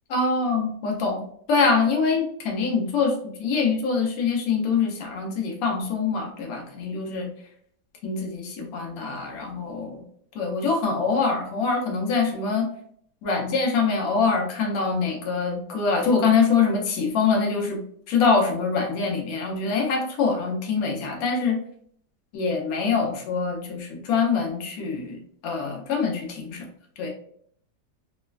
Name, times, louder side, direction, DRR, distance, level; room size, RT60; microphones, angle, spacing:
voice 1, 0.1-1.2 1.5-3.1 3.4-7.3 8.0-10.0 10.3-12.7 13.2-17.8 18.1-21.6 22.3-25.2 25.4-26.6 27.0-27.1, left 4 dB, 70° left, 1 dB, 1.0 m, -24 dB
3.1 x 2.1 x 2.3 m, 0.64 s
omnidirectional pair, 1.7 m